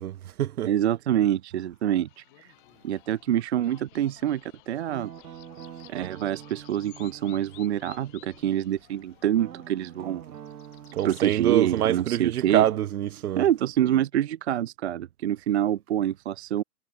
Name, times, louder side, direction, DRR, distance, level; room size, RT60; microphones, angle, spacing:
voice 1, 0.0-0.7 10.9-13.5, right 12 dB, 60° right, 1.1 m, -26 dB
voice 2, 0.7-2.5 2.8-5.1 5.9-10.2 11.0-12.6 13.4-16.6, right 11 dB, 45° right, 0.7 m, -26 dB
sound 1, 1.7-11.4, left 21 dB, 30° left, 4.9 m, -54 dB
Guitar, 4.9-8.7 9.3-14.1, right 9 dB, 80° right, 5.5 m, -47 dB
hypercardioid pair, 180°, 49 cm